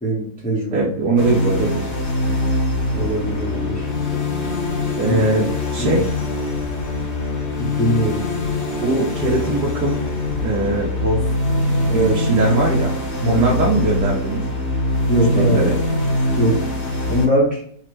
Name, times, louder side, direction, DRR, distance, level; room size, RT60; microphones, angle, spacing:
voice 1, 0.0-0.9 2.9-3.9 5.0-5.2 5.8-6.0 7.6-8.2 11.9-12.2 13.2-13.5 15.1-15.6 16.4-16.6 17.1-17.6, right 1 dB, 5° left, -9 dB, 0.6 m, -21 dB
voice 2, 0.7-1.9 5.0-5.5 5.7-6.1 8.8-10.0 10.4-11.2 11.8-12.9 13.3-14.4 15.3-15.7, right 2 dB, 65° right, -4 dB, 1.2 m, -20 dB
sound 1, 1.2-17.3, left 1 dB, 45° left, 1.0 m, -23 dB
3.3 x 2.1 x 3.1 m, 0.62 s
omnidirectional pair, 1.9 m